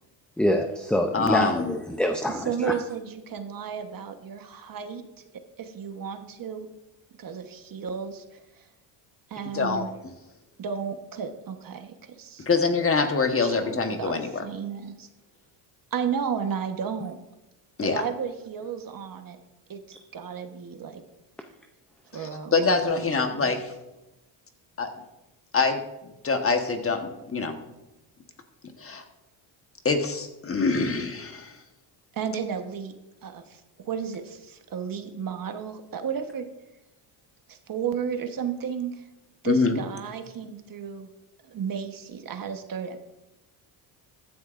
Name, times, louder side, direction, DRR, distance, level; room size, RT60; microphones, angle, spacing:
voice 1, 0.4-2.8, left 1 dB, ahead, 5 dB, 0.5 m, -25 dB
voice 2, 1.1-1.8 9.5-9.8 12.5-14.4 17.8-18.0 22.5-23.6 24.8-24.9 25.5-25.8 26.2-27.6 28.8-29.0 29.8-31.6 39.4-39.8, left 4 dB, 25° left, 6 dB, 1.2 m, -24 dB
voice 3, 2.3-5.0 5.6-6.7 7.2-8.7 9.3-9.9 10.6-12.5 13.4-15.1 15.9-17.2 17.8-19.4 19.7-21.0 22.1-23.5 32.1-32.9 33.2-36.5 37.5-39.1 39.4-41.1 41.4-43.0, right 7 dB, 45° right, 7 dB, 1.2 m, -33 dB
14.5 x 10.0 x 2.5 m, 1.0 s
cardioid pair, 105°, 48 cm